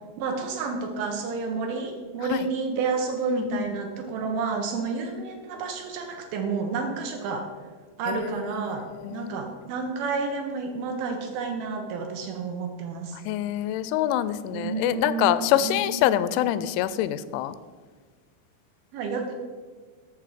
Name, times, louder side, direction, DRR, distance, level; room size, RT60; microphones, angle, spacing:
voice 1, 0.2-7.5 8.0-13.2 14.5-16.5 18.9-19.3, right 4 dB, 75° right, 4 dB, 2.3 m, -30 dB
voice 2, 3.3-3.6 8.1-8.4 9.0-9.3 13.3-17.5, left 12 dB, 85° left, 15 dB, 3.0 m, -25 dB
13.5 x 7.1 x 5.0 m, 1.5 s
omnidirectional pair, 5.4 m